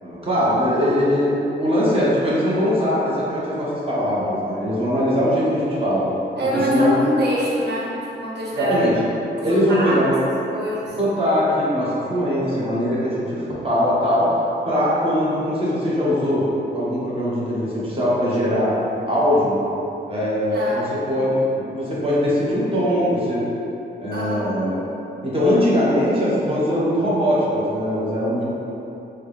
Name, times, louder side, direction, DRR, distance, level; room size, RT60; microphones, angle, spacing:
voice 1, 0.0-1.3 1.6-6.0 6.7-7.0 8.5-9.0 9.4-10.2 11.0-14.3 14.6-16.4 16.7-18.7 19.0-19.6 20.1-23.5 24.0-24.8 25.2-28.5, equal, 30° right, -8 dB, 1.1 m, -21 dB
voice 2, 6.4-7.9 8.2-8.8 9.4-10.0 10.5-10.9 20.5-21.1 24.1-24.7, equal, 65° right, -6 dB, 1.0 m, -24 dB
3.5 x 2.9 x 3.3 m, 3.0 s
cardioid pair, 100°, 18 cm